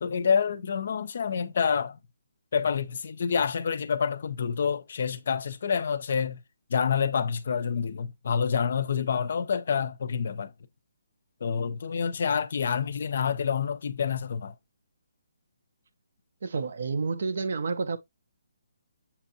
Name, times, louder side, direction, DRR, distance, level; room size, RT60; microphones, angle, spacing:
voice 1, 0.0-2.0 2.5-6.4 6.7-10.5 11.4-14.5, left 6 dB, 55° left, 0.5 m, -27 dB
voice 2, 16.4-18.0, right 4 dB, 65° right, 0.6 m, -29 dB
6.9 x 2.6 x 2.7 m
hypercardioid pair, 165°, 0 cm